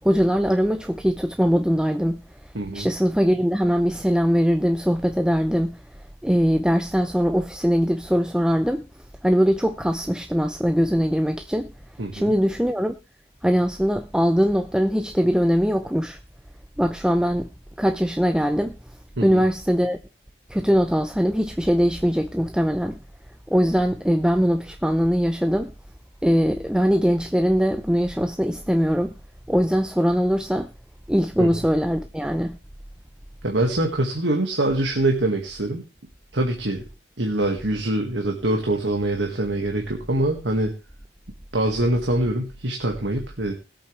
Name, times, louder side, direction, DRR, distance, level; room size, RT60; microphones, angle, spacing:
voice 1, 0.0-5.8 6.2-8.8 9.2-11.7 12.1-12.9 13.4-16.2 16.8-17.5 17.8-18.8 19.2-20.0 20.5-23.0 23.5-25.7 26.2-29.1 29.5-30.7 31.1-32.6, equal, 5° right, 0.6 m, -21 dB
voice 2, 2.5-2.9 12.0-12.3 19.2-19.4 31.4-31.5 33.4-35.8 36.3-36.8 37.2-40.8 41.5-43.5, right 1 dB, 90° right, 2.0 m, -24 dB
20.5 x 8.3 x 3.4 m
head